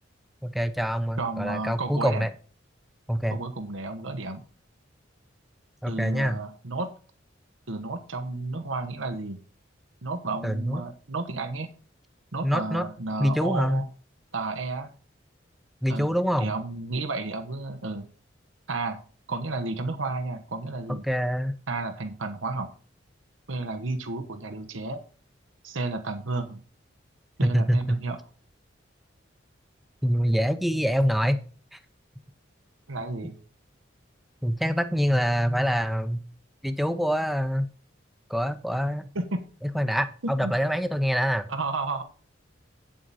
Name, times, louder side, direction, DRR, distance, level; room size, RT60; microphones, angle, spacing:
voice 1, 0.4-2.3 3.1-3.4 5.8-6.4 10.4-10.8 12.4-12.8 13.2-13.8 15.8-16.5 21.0-21.6 27.4-28.0 30.0-31.4 31.7-31.8 33.2-33.3 34.4-36.2 36.6-37.7 38.3-39.0 39.7-41.5, equal, ahead, 10 dB, 0.7 m, -25 dB
voice 2, 1.2-2.3 3.3-4.4 5.9-6.9 7.7-9.4 10.0-11.7 12.3-13.9 14.3-14.9 15.9-18.1 18.7-19.0 19.3-21.0 21.7-22.7 23.5-25.0 25.6-26.6 27.4-28.2 32.9-33.4 39.1-39.4 40.2-40.5 41.5-42.0, right 3 dB, 85° right, 6 dB, 1.1 m, -32 dB
9.0 x 7.6 x 4.1 m, 0.39 s
head